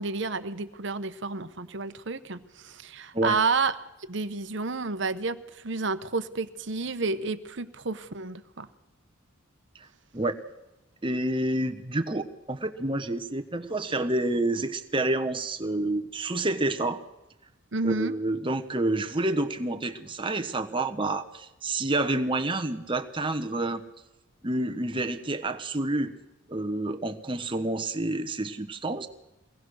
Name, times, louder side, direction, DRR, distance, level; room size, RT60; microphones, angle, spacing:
voice 1, 0.0-3.7 4.1-8.7 17.7-18.1, right 4 dB, 55° right, 11 dB, 1.0 m, -30 dB
voice 2, 11.0-17.0 17.8-23.8 24.4-26.1 26.5-29.1, right 2 dB, 25° right, 8 dB, 1.1 m, -28 dB
23.5 x 18.0 x 6.3 m, 0.98 s
head